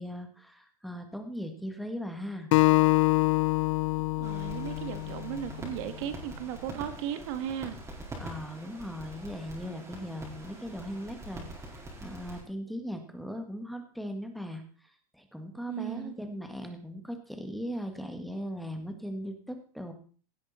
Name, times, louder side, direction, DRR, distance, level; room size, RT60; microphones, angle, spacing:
voice 1, 0.0-2.5 8.2-11.7 12.0-19.9, equal, ahead, 5 dB, 1.9 m, -39 dB
Acoustic guitar, 2.5-5.8, left 23 dB, 60° left, 0.4 m, -25 dB
sound 1, 4.2-12.4, right 1 dB, 15° right, 4.4 m, -44 dB
voice 2, 4.2-7.8 15.7-16.2, right 10 dB, 55° right, 10 dB, 1.6 m, -36 dB
17.0 x 8.0 x 4.3 m, 0.41 s
supercardioid pair, 135°, 19 cm